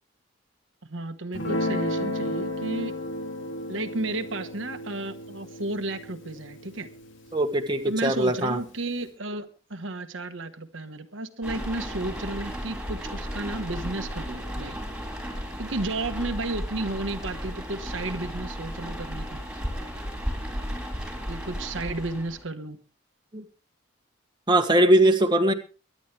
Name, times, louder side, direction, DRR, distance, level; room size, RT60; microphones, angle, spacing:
voice 1, 0.8-2.9 3.7-6.9 7.8-14.8 15.6-19.4 21.3-22.8, right 2 dB, 70° right, 7 dB, 1.3 m, -33 dB
Guitar, 1.3-7.9, left 1 dB, 65° left, 3.0 m, -33 dB
voice 2, 7.3-8.6 23.3-23.4 24.5-25.5, right 1 dB, 20° right, 4 dB, 1.5 m, -21 dB
sound 1, 11.4-22.4, equal, 5° right, 3.8 m, -34 dB
23.5 x 10.5 x 3.3 m, 0.34 s
head